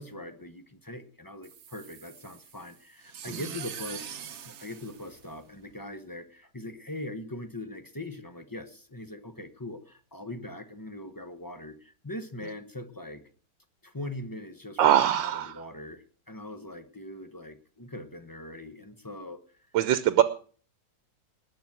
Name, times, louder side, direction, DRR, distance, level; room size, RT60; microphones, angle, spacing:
voice 1, 0.0-13.2 13.8-19.6, left 1 dB, 20° left, 9 dB, 0.6 m, -41 dB
sound 1, 1.4-5.8, right 8 dB, 55° right, 0.8 m, -44 dB
voice 2, 14.8-15.6 19.7-20.2, right 11 dB, 75° right, 13 dB, 1.5 m, -22 dB
19.5 x 7.3 x 6.1 m, 0.42 s
omnidirectional pair, 2.1 m